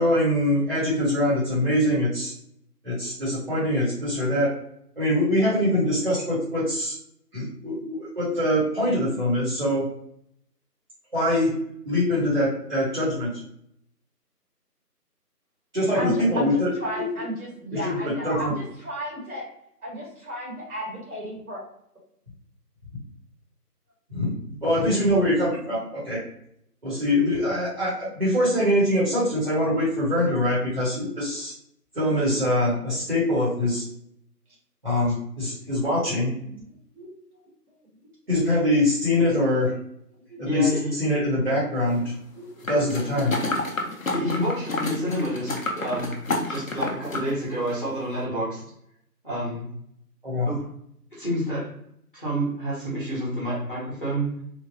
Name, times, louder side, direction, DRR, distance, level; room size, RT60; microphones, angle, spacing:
voice 1, 0.0-2.3 2.8-4.5 5.0-6.9 7.3-9.9 11.1-11.5 11.8-13.3 15.7-17.0 17.7-18.5 24.1-24.3 24.6-26.2 26.8-31.5 31.9-33.8 34.8-36.3 38.3-39.7 40.4-42.1 42.7-43.4 50.2-50.5, left 1 dB, 35° right, -9 dB, 1.1 m, -23 dB
voice 2, 15.9-19.4 19.8-21.6 36.4-36.7 36.9-37.4 40.3-40.4 42.3-42.7 43.4-44.2, equal, 60° right, -5 dB, 1.5 m, -34 dB
voice 3, 40.4-40.9 44.1-46.1 46.5-48.6 49.2-49.7 50.4-50.6 51.1-51.7 52.1-54.4, equal, 35° left, -8 dB, 0.9 m, -28 dB
sound 1, 42.6-47.3 47.7-47.8, left 2 dB, 55° left, 0.5 m, -29 dB
3.1 x 2.2 x 2.6 m, 0.71 s
figure-of-eight pair, 170°, 48 cm